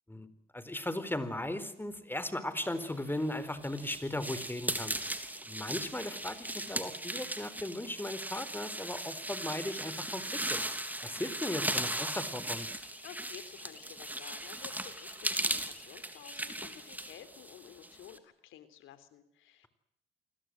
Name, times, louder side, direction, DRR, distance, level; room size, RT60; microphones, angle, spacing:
voice 1, 0.5-5.0 5.2-10.6 11.0-12.7, left 1 dB, 10° left, 13 dB, 4.3 m, -37 dB
sound 1, 3.0-18.2, right 1 dB, 10° right, 3.2 m, -38 dB
sound 2, 12.1-17.1, left 5 dB, 40° left, 6.9 m, -59 dB
voice 2, 13.0-19.7, left 11 dB, 90° left, 12 dB, 3.6 m, -52 dB
28.5 x 21.5 x 7.9 m, 0.74 s
cardioid pair, 90°, 20 cm